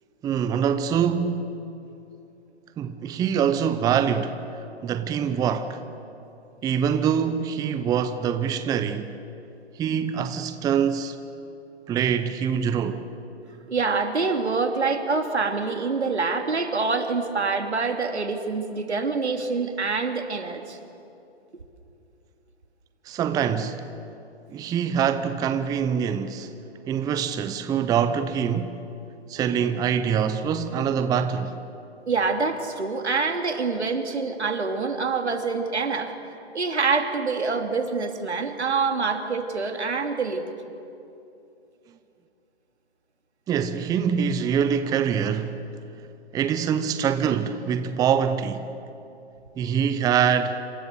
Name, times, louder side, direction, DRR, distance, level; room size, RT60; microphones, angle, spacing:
voice 1, 0.2-1.5 2.8-5.8 6.6-9.1 9.8-11.2 11.9-13.1 23.1-23.8 24.5-26.5 26.8-28.8 29.3-31.6 43.5-45.6 46.3-48.7 49.6-50.6, right 7 dB, 10° right, 0.7 m, -24 dB
voice 2, 13.7-20.8 32.1-36.1 36.5-40.4, right 4 dB, 80° right, 3.1 m, -26 dB
27.5 x 27.5 x 6.9 m
figure-of-eight pair, 130°, 33 cm